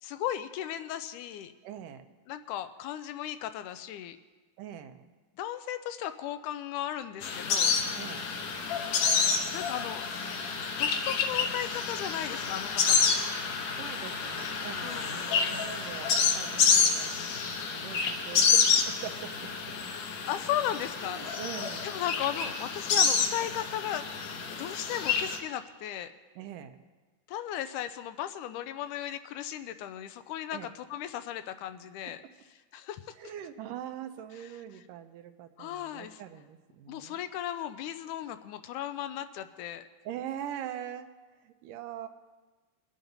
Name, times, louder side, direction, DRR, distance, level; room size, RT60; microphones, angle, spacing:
voice 1, 0.0-1.5 2.3-4.2 5.4-7.7 9.5-10.1 10.8-13.2 14.8-15.2 20.3-21.2 21.8-26.1 27.3-32.2 32.7-33.0 34.4-34.8 35.6-36.2 36.9-39.8, left 11 dB, 80° left, 11 dB, 2.0 m, -36 dB
voice 2, 1.6-2.1 4.6-5.0 7.9-8.3 13.7-17.4 17.7-19.7 21.0-21.9 26.4-26.8 30.5-30.7 33.2-37.2 40.1-41.1 41.4-42.1, right 10 dB, 85° right, 7 dB, 2.4 m, -42 dB
sound 1, 7.2-25.4, left 5 dB, 65° left, 2.0 m, -28 dB
22.5 x 9.0 x 4.0 m, 1.3 s
omnidirectional pair, 3.7 m